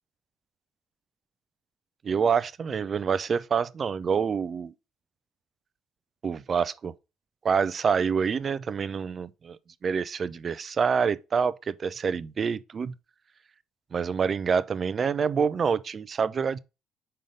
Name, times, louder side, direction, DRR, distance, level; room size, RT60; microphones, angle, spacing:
voice 1, 2.0-4.7 6.2-6.9 7.4-12.9 13.9-16.6, right 6 dB, 45° right, 0.4 m, -27 dB
5.5 x 3.9 x 5.0 m
hypercardioid pair, 55°, 0 cm